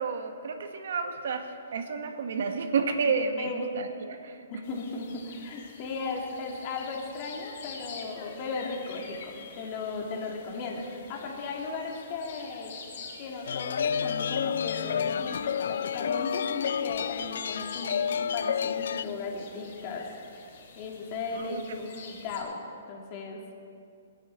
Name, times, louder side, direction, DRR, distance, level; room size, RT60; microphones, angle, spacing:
voice 1, 0.0-4.5 21.3-21.6, right 5 dB, 70° right, 6 dB, 1.5 m, -31 dB
voice 2, 3.4-3.7 4.5-12.7 13.2-20.1 20.8-22.6 22.9-23.4, left 4 dB, 35° left, -1 dB, 2.6 m, -36 dB
sound 1, 4.6-22.4, left 5 dB, 50° left, 3.8 m, -48 dB
sound 2, 13.5-19.0, left 7 dB, 75° left, 0.4 m, -30 dB
29.0 x 10.0 x 4.4 m, 2.4 s
hypercardioid pair, 160°, 0 cm